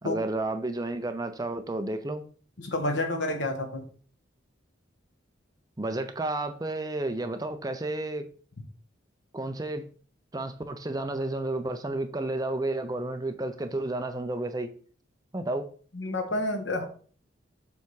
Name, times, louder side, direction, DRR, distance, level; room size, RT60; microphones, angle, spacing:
voice 1, 0.0-2.2 5.8-8.3 9.3-9.8 10.3-14.7 15.3-15.7, right 2 dB, 20° right, 0.5 m, -31 dB
voice 2, 2.6-3.8 15.9-16.8, left 2 dB, 65° left, 1.2 m, -29 dB
7.1 x 3.5 x 4.7 m
head